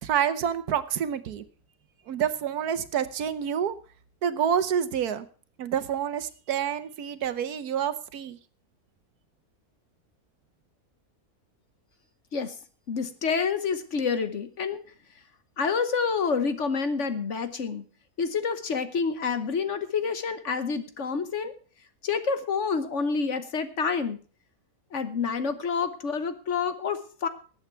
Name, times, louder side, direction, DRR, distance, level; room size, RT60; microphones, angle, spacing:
voice 1, 0.0-1.4 2.1-3.7 4.2-5.3 5.6-8.4, right 8 dB, 80° right, 13 dB, 1.4 m, -28 dB
voice 2, 12.9-14.8 15.6-17.8 18.2-21.5 22.0-24.2 24.9-27.3, left 5 dB, 55° left, 11 dB, 1.3 m, -28 dB
19.0 x 8.1 x 4.5 m, 0.39 s
omnidirectional pair, 1.6 m